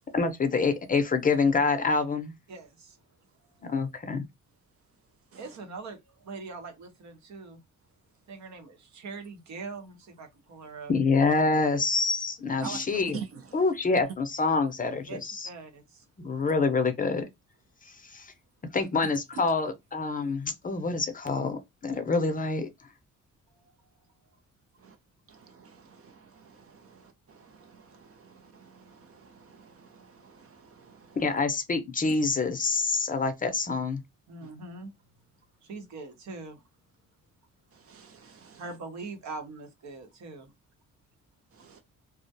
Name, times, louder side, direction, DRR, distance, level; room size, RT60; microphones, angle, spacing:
voice 1, 0.1-2.3 3.7-4.2 10.9-13.2 13.5-15.5 16.2-17.3 17.8-18.3 18.7-22.7 31.2-34.0, left 4 dB, 30° left, 0.5 m, -26 dB
voice 2, 2.5-3.0 3.4-3.8 5.4-7.6 8.3-10.9 12.6-13.0 15.1-15.2 15.4-16.1 23.5-23.7 34.3-34.9 35.6-36.6 38.6-40.5, right 4 dB, 65° right, 0.9 m, -42 dB
voice 3, 25.3-31.2 37.9-38.6 41.6-41.8, right 7 dB, 50° right, 0.5 m, -48 dB
2.4 x 2.1 x 2.6 m
cardioid pair, 90°, 30 cm